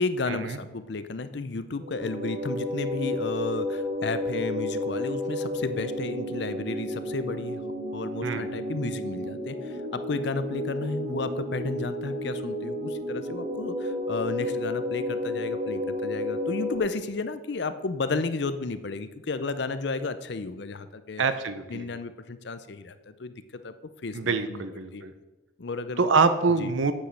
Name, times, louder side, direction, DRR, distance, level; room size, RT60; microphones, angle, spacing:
voice 1, 0.0-7.6 7.9-21.2 21.7-23.7 24.0-24.6 24.9-25.0 25.6-26.1 26.6-26.7, left 3 dB, 60° left, 12 dB, 0.6 m, -33 dB
sound 1, 1.8-16.8, left 1 dB, 55° right, 1.9 m, -32 dB
voice 2, 21.2-21.8 24.1-25.1 26.0-26.9, right 4 dB, 80° right, 11 dB, 0.7 m, -25 dB
8.7 x 5.2 x 6.3 m, 1.1 s
head